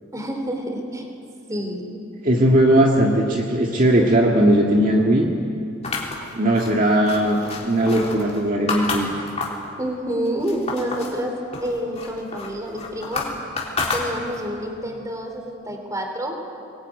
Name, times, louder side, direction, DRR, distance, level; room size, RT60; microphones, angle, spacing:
voice 1, 0.1-1.1 1.5-2.0 9.8-13.3 13.9-16.4, equal, 15° right, 3 dB, 3.4 m, -28 dB
voice 2, 2.2-5.3 6.3-9.1, right 1 dB, 45° right, -1 dB, 1.8 m, -18 dB
sound 1, 5.8-9.7 10.1-11.2 11.5-14.5, left 3 dB, 35° left, 3.5 m, -30 dB
23.0 x 20.5 x 9.4 m, 2.7 s
head